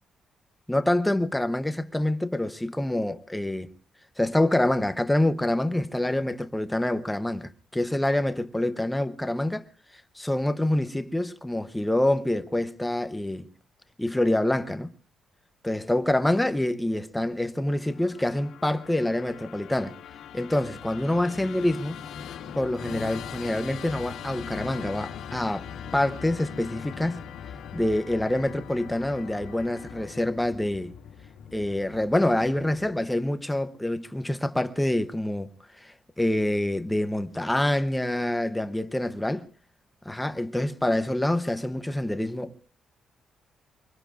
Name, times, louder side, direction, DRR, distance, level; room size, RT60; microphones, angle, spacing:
voice 1, 0.7-3.7 4.2-9.7 10.2-13.5 14.0-14.9 15.6-20.0 20.3-22.0 22.5-25.7 25.9-27.2 27.7-30.9 31.5-35.5 35.8-39.5 40.0-42.6, left 1 dB, 5° left, 0.8 m, -26 dB
Musical instrument, 17.8-33.1, left 8 dB, 80° left, 1.9 m, -41 dB
24.0 x 24.0 x 2.5 m
cardioid pair, 180°, 0 cm